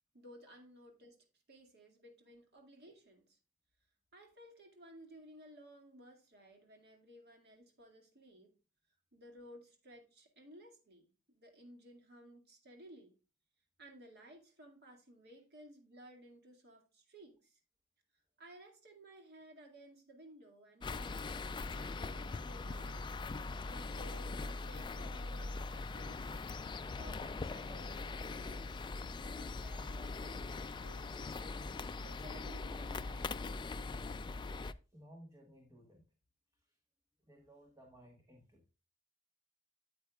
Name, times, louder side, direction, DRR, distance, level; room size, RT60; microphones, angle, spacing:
voice 1, 0.1-1.2 1.5-3.4 4.1-8.5 9.1-13.2 13.8-17.6 18.4-21.2 21.6-23.0 23.7-26.3 27.0-28.9 29.2-33.4, right 1 dB, 50° right, 2.1 m, -57 dB
sound 1, 20.8-34.7, left 3 dB, 20° left, 0.3 m, -41 dB
voice 2, 34.9-36.1 36.5-36.8 37.3-38.6, equal, 15° right, 1.3 m, -59 dB
9.2 x 8.3 x 2.3 m
head